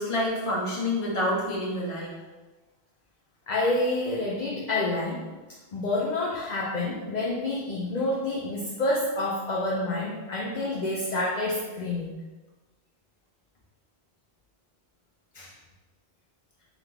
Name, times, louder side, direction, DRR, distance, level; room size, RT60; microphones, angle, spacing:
voice 1, 0.0-2.2 15.3-15.5, left 1 dB, 30° left, -5 dB, 1.0 m, -28 dB
voice 2, 3.5-5.2 5.7-12.2, left 2 dB, 50° left, -4 dB, 0.7 m, -28 dB
3.8 x 3.5 x 3.3 m, 1.2 s
omnidirectional pair, 1.1 m